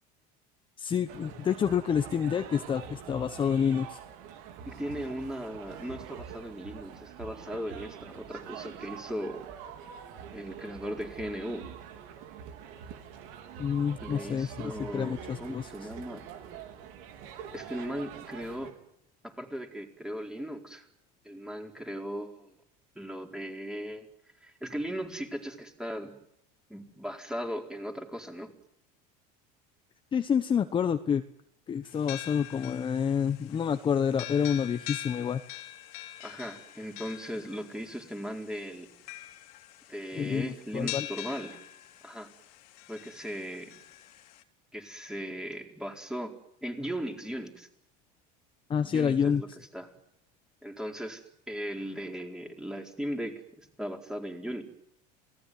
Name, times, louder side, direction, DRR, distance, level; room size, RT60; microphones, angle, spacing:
voice 1, 0.8-4.0 13.6-15.7 30.1-31.2 31.7-35.4 40.1-41.1 48.7-49.4, left 7 dB, 25° left, 9 dB, 1.1 m, -28 dB
sound 1, 1.1-18.7, right 8 dB, 75° right, 4.2 m, -45 dB
voice 2, 4.7-9.4 10.3-11.7 14.0-16.3 17.5-18.8 19.2-20.9 21.2-22.5 22.9-24.1 24.4-26.1 26.7-28.5 36.2-38.9 39.9-41.6 42.0-42.3 42.9-43.7 44.7-46.3 46.6-47.7 48.8-49.5 49.7-49.9 50.6-53.4 53.8-54.6, equal, 5° right, 3 dB, 4.4 m, -37 dB
sound 2, 31.8-44.4, left 16 dB, 85° left, 3.0 m, -44 dB
28.0 x 19.0 x 9.6 m, 0.77 s
supercardioid pair, 125°, 19 cm